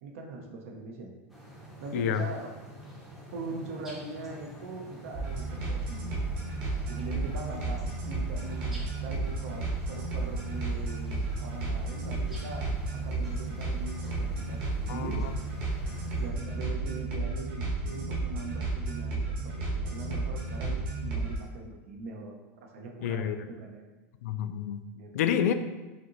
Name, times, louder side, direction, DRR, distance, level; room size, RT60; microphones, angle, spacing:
voice 1, 0.0-1.1 1.8-2.5 3.3-6.1 6.9-15.2 16.2-23.8 24.9-25.4, right 3 dB, 65° right, 2 dB, 0.7 m, -41 dB
sound 1, 1.3-16.3, equal, 5° right, 0.6 m, -47 dB
voice 2, 1.9-2.2 14.9-15.3 23.0-23.4 24.2-24.8 25.1-25.5, left 9 dB, 85° left, 9 dB, 0.3 m, -28 dB
sound 2, 5.1-21.4, right 3 dB, 45° right, 1.3 m, -33 dB
5.1 x 2.7 x 2.9 m, 1.1 s
supercardioid pair, 170°, 8 cm